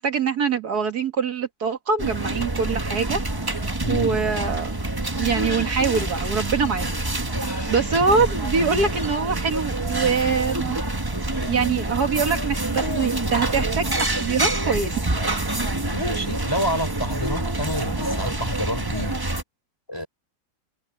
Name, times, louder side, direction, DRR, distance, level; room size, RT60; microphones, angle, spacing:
voice 1, 0.0-3.5 3.9-4.7 5.2-7.0 7.7-10.8 11.5-15.1, right 5 dB, 60° right, 2.1 m, -24 dB
sound 1, 2.0-19.4, right 2 dB, 15° right, 1.1 m, -26 dB
voice 2, 3.8-4.2 7.4-7.7 8.2-8.3 15.9-19.2 19.9-20.1, equal, 15° left, 3.8 m, -29 dB
omnidirectional pair, 1.9 m